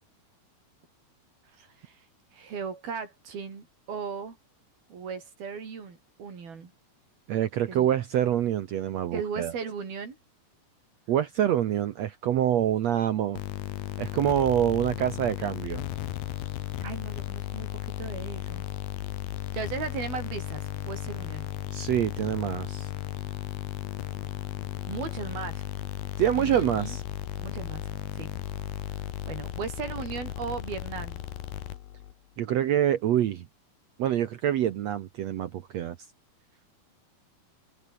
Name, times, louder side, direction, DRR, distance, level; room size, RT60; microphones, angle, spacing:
voice 1, 1.6-2.0 2.3-4.4 4.9-6.7 7.7-7.9 9.1-10.2 16.8-18.6 19.5-21.5 24.9-25.7 26.4-27.0 27.4-27.9 28.1-28.3 29.3-31.2, right 6 dB, 85° right, 6.7 m, -37 dB
voice 2, 7.3-9.5 11.1-13.4 14.0-15.8 21.7-22.9 26.2-27.0 32.4-33.5 34.0-36.0, right 11 dB, 70° right, 1.7 m, -26 dB
sound 1, 13.3-32.1, left 13 dB, 80° left, 3.3 m, -35 dB
omnidirectional pair, 4.2 m